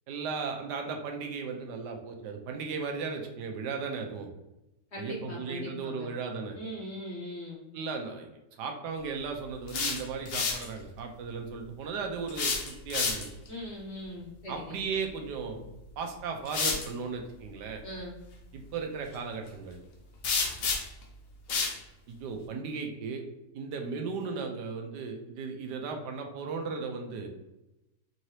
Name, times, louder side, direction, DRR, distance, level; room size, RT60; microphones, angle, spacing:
voice 1, 0.1-4.3 5.0-6.6 7.7-8.3 8.6-13.3 14.5-15.6 16.0-17.8 18.5-19.8 22.1-23.2 23.5-27.3, right 5 dB, 80° right, 3 dB, 1.2 m, -36 dB
voice 2, 4.9-6.1 6.6-7.6 13.5-14.8 17.8-18.1, left 1 dB, 55° left, -3 dB, 0.8 m, -40 dB
sound 1, 9.5-10.7 12.3-13.5 15.5-15.7 16.4-16.9 20.2-21.0 21.5-21.8, left 4 dB, 90° left, 0.5 m, -30 dB
4.7 x 2.7 x 3.1 m, 0.94 s
omnidirectional pair, 1.9 m